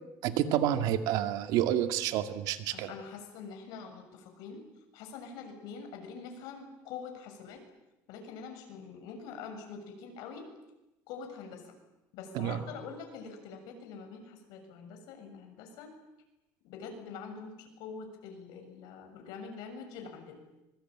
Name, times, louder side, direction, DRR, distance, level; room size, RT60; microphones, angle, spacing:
voice 1, 0.2-2.9 12.3-12.6, right 11 dB, 70° right, 9 dB, 2.1 m, -29 dB
voice 2, 2.7-4.6 4.9-7.6 8.1-10.5 11.1-11.7 12.1-15.9 16.6-20.4, left 5 dB, 75° left, 4 dB, 7.1 m, -45 dB
25.5 x 22.5 x 8.9 m, 0.95 s
cardioid pair, 150°, 7 cm